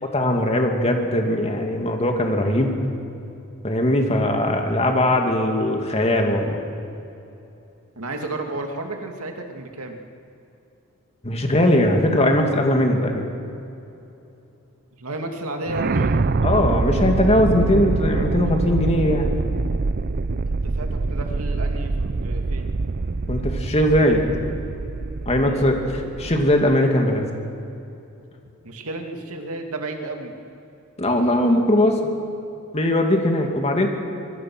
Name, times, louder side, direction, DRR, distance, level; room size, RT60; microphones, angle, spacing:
voice 1, 0.1-2.7 3.6-6.6 11.2-13.2 16.4-19.3 23.3-24.3 25.2-27.3 31.0-32.1 32.7-33.9, left 1 dB, 30° left, 3 dB, 2.6 m, -20 dB
voice 2, 8.0-10.0 14.9-16.2 20.5-22.8 25.4-25.9 28.6-30.3, right 2 dB, 75° right, 3 dB, 2.4 m, -32 dB
sound 1, 15.7-26.8, right 3 dB, 45° right, 0.6 m, -25 dB
25.0 x 23.0 x 6.3 m, 2.8 s
head